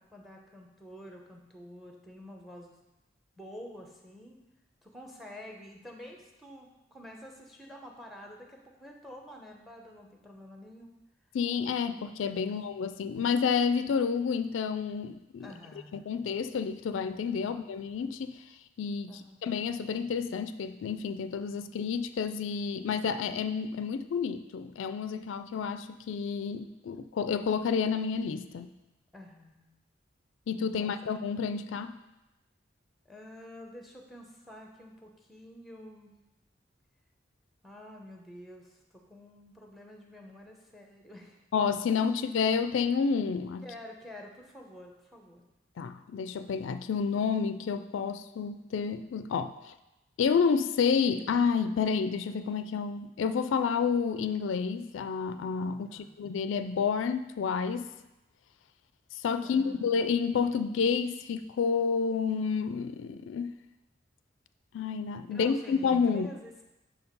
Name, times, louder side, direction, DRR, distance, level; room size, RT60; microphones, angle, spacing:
voice 1, 0.0-2.8 3.4-4.4 4.8-10.9 12.4-12.6 15.4-16.0 17.5-17.6 19.1-19.4 29.1-29.7 30.8-30.9 33.0-36.1 37.6-41.4 41.9-42.0 43.6-45.4 55.9-56.1 59.4-59.9 65.3-66.6, left 1 dB, ahead, 1 dB, 0.7 m, -48 dB
voice 2, 11.3-15.5 15.9-18.4 18.8-28.7 30.5-32.0 41.5-43.7 45.8-49.7 50.2-57.9 59.1-63.5 64.7-66.3, left 6 dB, 85° left, 11 dB, 0.3 m, -30 dB
5.9 x 4.6 x 5.2 m, 0.96 s
head